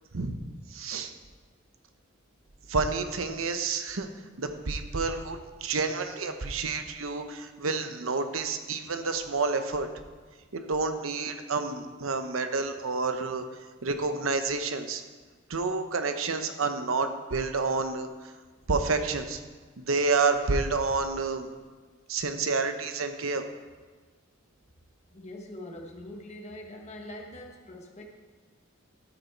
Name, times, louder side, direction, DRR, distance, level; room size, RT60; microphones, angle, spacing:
voice 1, 0.7-1.1 2.7-4.1 4.4-9.9 10.5-13.4 13.8-15.0 15.5-18.1 18.7-19.4 19.8-21.5 22.1-23.4, right 4 dB, 80° right, 8 dB, 0.9 m, -29 dB
voice 2, 25.1-28.0, left 1 dB, 35° left, 1 dB, 1.2 m, -43 dB
13.0 x 6.9 x 4.6 m, 1.4 s
head